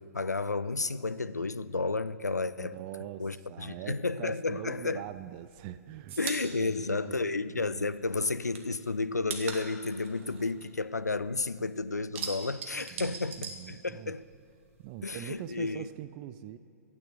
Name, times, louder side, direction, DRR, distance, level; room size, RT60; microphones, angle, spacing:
voice 1, 0.0-2.7 3.2-5.0 6.2-14.2 15.0-15.9, left 3 dB, 90° left, 0.4 m, -32 dB
voice 2, 2.5-6.2 6.5-7.9 12.9-14.1 14.8-16.6, right 13 dB, 35° right, 0.4 m, -43 dB
sound 1, 5.0-7.8 8.1-11.4 11.7-14.3 14.6-15.7, right 6 dB, 50° right, 1.6 m, -41 dB
13.0 x 9.1 x 6.9 m
figure-of-eight pair, 110°, 9 cm